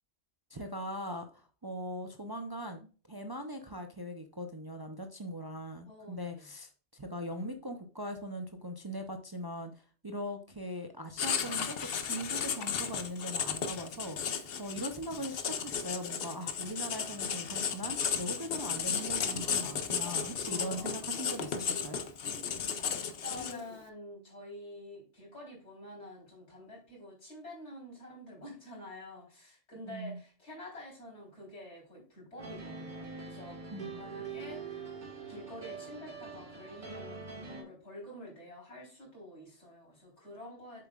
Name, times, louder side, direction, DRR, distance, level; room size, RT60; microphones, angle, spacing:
voice 1, 0.5-22.0 29.8-30.2 33.7-33.9, equal, 25° right, 5 dB, 0.6 m, -40 dB
voice 2, 5.9-6.5 20.4-21.1 22.9-33.6 33.9-34.9 35.3-40.9, left 1 dB, 85° left, -4 dB, 4.2 m, -48 dB
Writing, 11.2-23.8, left 7 dB, 60° left, 0.9 m, -34 dB
sound 1, 32.4-37.6, right 4 dB, 45° right, 1.7 m, -44 dB
7.7 x 7.2 x 2.4 m, 0.38 s
omnidirectional pair, 1.2 m